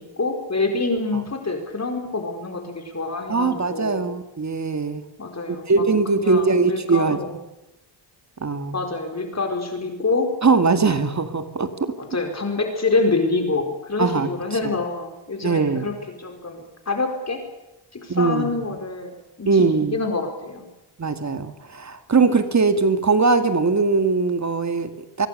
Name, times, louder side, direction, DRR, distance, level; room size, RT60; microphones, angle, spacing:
voice 1, 0.0-4.0 5.2-5.8 6.1-7.4 8.7-10.3 12.0-16.6 16.9-17.4 18.0-20.6, left 3 dB, 35° left, 4 dB, 4.8 m, -26 dB
voice 2, 3.3-5.0 5.7-7.2 8.4-8.8 10.4-11.9 14.0-14.3 14.6-14.7 15.4-15.9 18.1-18.5 19.5-20.0 21.0-25.3, right 4 dB, 35° right, 9 dB, 2.2 m, -21 dB
25.0 x 23.0 x 6.7 m, 0.99 s
wide cardioid pair, 120°, 45 cm